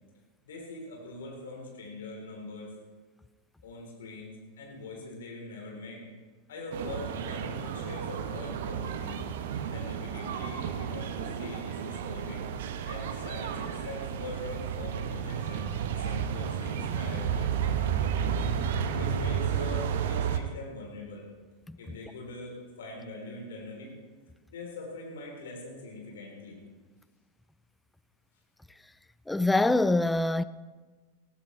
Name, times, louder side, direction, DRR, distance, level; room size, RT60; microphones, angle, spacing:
voice 1, 0.4-2.7 3.6-6.0 6.5-9.4 9.7-12.4 12.8-18.4 18.9-21.3 21.8-23.9 24.5-26.6, left 2 dB, 60° left, 3.5 m, -43 dB
sound 1, 6.7-20.4, right 8 dB, 55° right, 0.9 m, -32 dB
voice 2, 29.3-30.4, left 2 dB, 5° left, 0.4 m, -24 dB
18.5 x 15.5 x 3.2 m
figure-of-eight pair, 90°, 0 cm